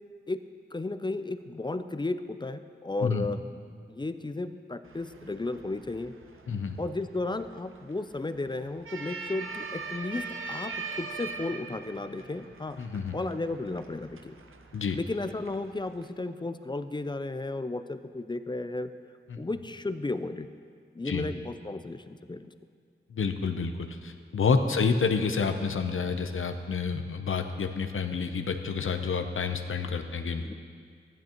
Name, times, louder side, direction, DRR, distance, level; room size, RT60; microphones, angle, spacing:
voice 1, 0.7-3.4 3.9-6.1 6.8-12.8 13.1-14.4 14.9-18.9 19.4-20.5 20.9-22.5 30.4-30.5, left 2 dB, 20° left, 11 dB, 0.4 m, -34 dB
sound 1, 4.8-16.1, right 4 dB, 90° right, 0.7 m, -42 dB
voice 2, 6.5-6.8 12.8-13.1 14.7-15.0 19.3-19.4 21.0-21.3 23.1-30.5, left 5 dB, 80° left, 7 dB, 0.7 m, -29 dB
14.5 x 11.0 x 3.0 m, 2.1 s
wide cardioid pair, 85°, 21 cm